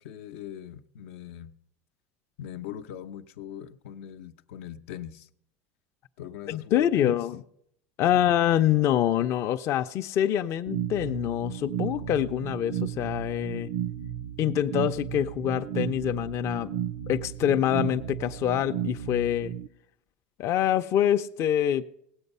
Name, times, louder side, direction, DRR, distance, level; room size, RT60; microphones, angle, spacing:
voice 1, 0.0-1.5 2.4-5.3 6.2-7.3 8.1-8.4, left 9 dB, 85° left, 0.7 m, -40 dB
voice 2, 6.5-7.3 8.0-13.7 14.4-16.7 17.1-19.5 20.4-21.8, left 11 dB, 45° left, 0.5 m, -25 dB
sound 1, 10.7-19.7, right 10 dB, 65° right, 0.4 m, -34 dB
18.0 x 8.0 x 5.4 m
supercardioid pair, 140°, 7 cm